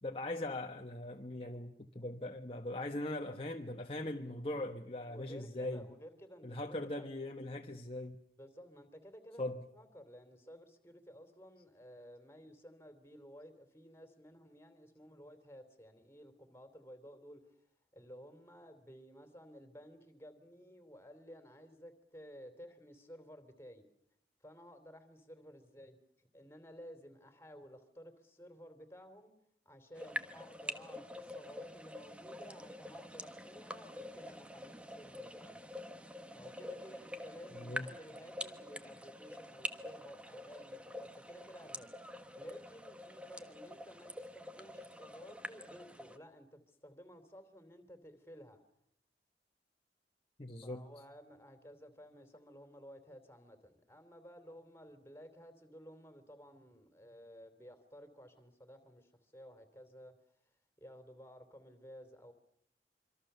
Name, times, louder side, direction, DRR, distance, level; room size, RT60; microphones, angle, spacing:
voice 1, 0.0-5.8 6.4-8.1 9.4-9.6 37.5-37.9 50.4-50.8, left 1 dB, 30° left, 1.2 m, -40 dB
voice 2, 5.0-7.1 8.4-17.6 17.9-23.8 24.4-29.3 29.6-35.7 36.3-48.6 50.6-60.2 60.8-62.3, equal, 15° left, 3.2 m, -55 dB
sound 1, 29.9-46.2, equal, 5° right, 1.3 m, -46 dB
26.0 x 25.5 x 6.8 m
head